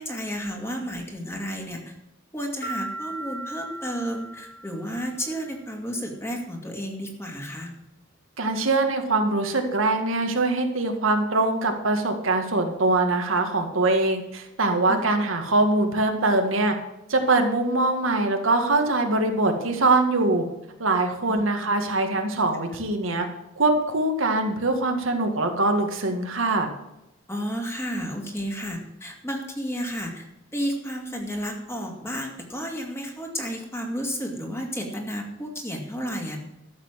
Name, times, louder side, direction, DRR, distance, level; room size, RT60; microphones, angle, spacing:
voice 1, 0.0-1.9 2.3-7.7 14.9-15.0 21.3-21.4 27.3-30.3 30.5-36.4, equal, 15° left, 1 dB, 2.4 m, -32 dB
sound 1, 2.6-5.3, right 2 dB, 55° left, 3.9 m, -37 dB
voice 2, 8.4-16.7 17.1-20.4 20.8-23.3 23.6-26.7, right 2 dB, 80° right, 4 dB, 2.0 m, -23 dB
13.0 x 7.1 x 7.5 m, 0.89 s
head